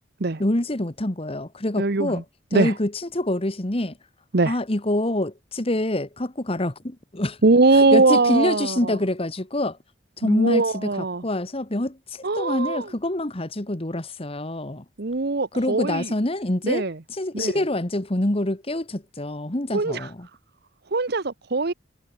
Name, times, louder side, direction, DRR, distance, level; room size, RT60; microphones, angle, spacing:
voice 1, 0.4-2.2 2.5-3.9 4.5-7.4 7.7-9.8 10.2-10.9 11.2-14.8 15.5-20.3, left 1 dB, 30° left, 1.5 m, -26 dB
voice 2, 1.8-2.2 2.5-2.7 4.3-4.6 7.4-9.0 10.2-11.2 12.2-12.9 15.0-16.1 16.6-17.0 17.3-17.5 19.7-20.1 20.9-21.7, right 3 dB, 55° right, 0.9 m, -21 dB
head